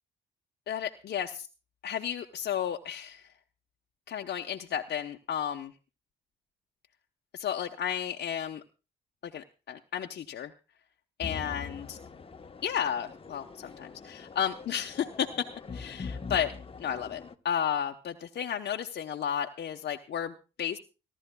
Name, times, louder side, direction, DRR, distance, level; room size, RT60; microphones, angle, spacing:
voice 1, 0.7-1.3 1.8-3.2 4.1-5.7 7.3-8.6 9.2-10.5 11.2-11.8 12.6-15.5 15.7-16.5 16.8-20.8, left 9 dB, 55° left, 3 dB, 0.9 m, -33 dB
sound 1, 11.2-17.3, left 5 dB, 30° left, 1.0 m, -43 dB
29.5 x 12.0 x 2.2 m, 0.32 s
cardioid pair, 90°, 20 cm